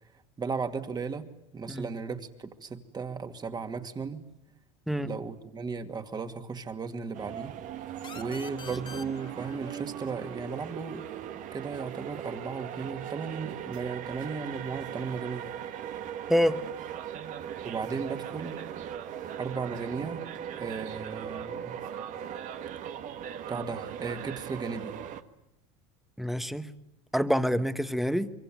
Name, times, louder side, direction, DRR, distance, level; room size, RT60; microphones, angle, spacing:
voice 1, 0.4-1.3 1.5-4.2 5.0-7.5 8.1-11.0 11.5-15.5 17.6-18.6 19.4-20.3 20.6-21.8 23.5-25.0, right 5 dB, 25° right, 7 dB, 2.4 m, -35 dB
sound 1, 7.1-25.2, right 9 dB, 50° right, 1.7 m, -39 dB
sound 2, 8.0-11.4, left 6 dB, 30° left, 2.4 m, -48 dB
voice 2, 16.3-16.6 26.2-26.7 27.1-28.3, equal, ahead, 11 dB, 1.4 m, -26 dB
25.5 x 23.5 x 9.3 m, 0.83 s
supercardioid pair, 105°, 16 cm